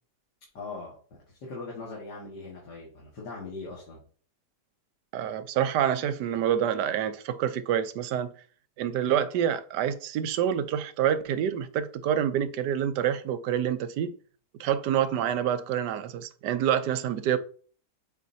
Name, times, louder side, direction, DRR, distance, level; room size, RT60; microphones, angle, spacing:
voice 1, 0.5-0.9 1.3-4.0, left 3 dB, 75° left, 2.5 m, -40 dB
voice 2, 5.1-8.3 8.8-14.1 14.6-17.4, right 9 dB, 80° right, 1.3 m, -27 dB
8.4 x 4.4 x 2.8 m
omnidirectional pair, 1.8 m